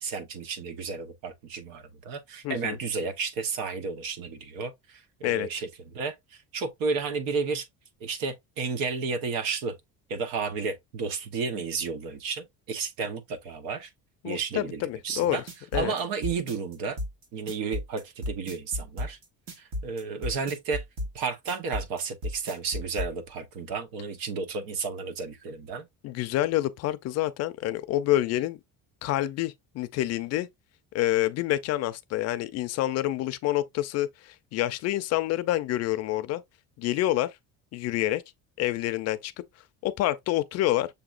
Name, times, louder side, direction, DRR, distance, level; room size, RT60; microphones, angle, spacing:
voice 1, 0.0-7.7 8.0-9.7 10.1-13.9 14.2-15.4 15.7-17.0 17.3-19.2 19.6-20.8 21.1-25.9, right 5 dB, 80° right, 1.0 m, -32 dB
voice 2, 2.4-2.8 5.2-5.5 14.2-15.4 15.7-15.9 26.0-28.6 29.0-30.5 30.9-36.4 36.8-37.3 37.7-38.2 38.6-39.3 39.8-40.9, left 14 dB, 50° left, 0.4 m, -27 dB
sound 1, 15.2-23.1, left 1 dB, 55° right, 1.4 m, -34 dB
6.8 x 2.9 x 2.4 m
cardioid pair, 175°, 34 cm